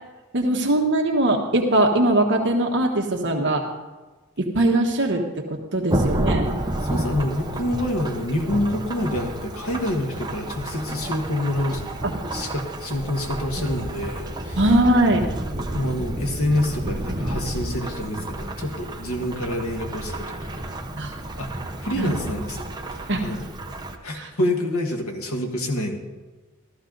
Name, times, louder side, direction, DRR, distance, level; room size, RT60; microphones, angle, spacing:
voice 1, 0.3-3.6 4.4-6.5 12.0-12.1 14.6-15.2 21.0-21.1 22.0-22.1 23.1-23.2 24.1-24.3, right 1 dB, 55° right, 0 dB, 1.4 m, -21 dB
Thunderstorm / Rain, 5.9-24.0, right 1 dB, 20° right, 1.0 m, -30 dB
voice 2, 6.9-11.8 12.3-14.6 15.7-20.6 21.3-21.5 21.8-22.7 22.9-23.5 24.0-26.0, left 1 dB, 75° left, 3 dB, 1.7 m, -27 dB
14.5 x 13.5 x 4.0 m, 1.2 s
head